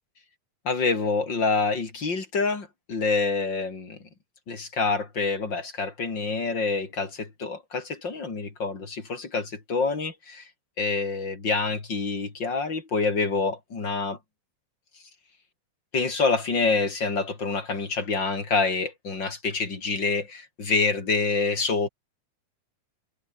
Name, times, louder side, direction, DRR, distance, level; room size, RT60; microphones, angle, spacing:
voice 1, 0.7-4.0 4.5-10.4 10.8-14.2 15.9-21.9, left 4 dB, 35° left, 4.3 m, -27 dB
omnidirectional pair, 3.5 m